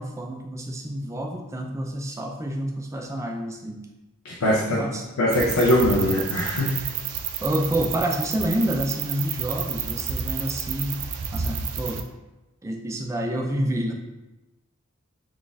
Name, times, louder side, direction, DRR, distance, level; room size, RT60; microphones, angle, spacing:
voice 1, 0.0-3.9 4.4-5.0 7.4-12.0 12.6-13.9, right 1 dB, 15° right, 2 dB, 0.3 m, -28 dB
voice 2, 4.2-4.9 5.2-6.8, left 1 dB, 80° left, -3 dB, 0.5 m, -21 dB
sound 1, 5.3-12.0, right 7 dB, 85° right, 0.4 m, -30 dB
4.1 x 2.4 x 3.3 m, 1.0 s
head